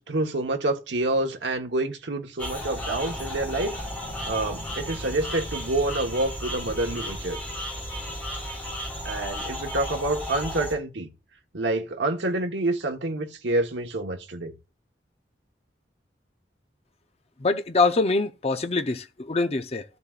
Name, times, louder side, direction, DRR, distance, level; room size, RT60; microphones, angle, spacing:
voice 1, 0.0-3.8 4.3-7.4 9.0-11.1 11.5-14.5, right 2 dB, 90° right, 1.3 m, -27 dB
sound 1, 2.4-10.8, equal, 10° left, 4.2 m, -34 dB
voice 2, 17.4-19.8, left 3 dB, 35° left, 0.7 m, -24 dB
13.5 x 6.9 x 2.5 m
head